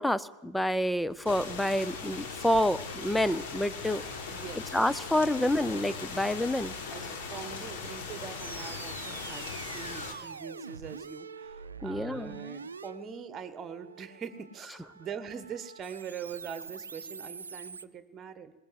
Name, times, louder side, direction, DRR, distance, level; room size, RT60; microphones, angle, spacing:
voice 1, 0.0-4.0 4.7-6.7 11.8-12.4, left 1 dB, 5° left, 16 dB, 0.7 m, -28 dB
sound 1, 1.1-8.9, left 3 dB, 25° left, 3.3 m, -57 dB
sound 2, 1.2-10.1, left 4 dB, 55° left, 3.5 m, -39 dB
voice 2, 4.3-4.6 5.4-5.5 6.9-18.5, right 7 dB, 25° right, 14 dB, 1.6 m, -43 dB
sound 3, 8.4-17.9, right 5 dB, 75° right, 0.7 m, -45 dB
20.5 x 19.5 x 8.0 m, 1.0 s
figure-of-eight pair, 90°, 0 cm